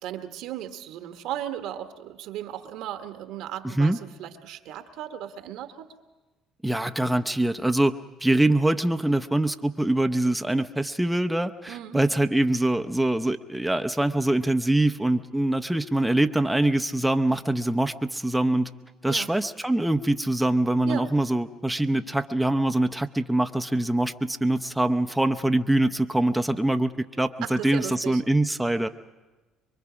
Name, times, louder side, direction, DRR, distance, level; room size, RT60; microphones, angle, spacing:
voice 1, 0.0-5.9 11.7-12.0 19.1-19.3 20.8-21.1 27.4-28.2, right 11 dB, 75° right, 7 dB, 1.3 m, -36 dB
voice 2, 3.6-4.0 6.6-8.0 8.2-18.7 19.0-28.9, right 1 dB, 5° right, 7 dB, 0.7 m, -24 dB
24.0 x 23.0 x 5.0 m, 1.2 s
supercardioid pair, 75°, 0 cm